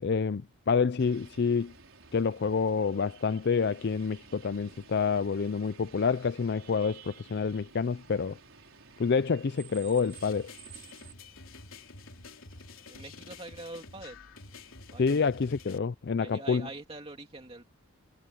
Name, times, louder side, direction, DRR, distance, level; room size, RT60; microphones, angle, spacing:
voice 1, 0.0-1.7 2.1-8.4 9.0-10.5 15.0-16.7, left 5 dB, 50° left, 0.4 m, -28 dB
sound 1, 1.0-11.1, right 6 dB, 65° right, 5.2 m, -53 dB
sound 2, 10.1-15.8, left 3 dB, 65° left, 3.6 m, -49 dB
voice 2, 12.9-14.2 14.9-15.2 16.2-17.6, right 2 dB, 25° right, 2.7 m, -44 dB
head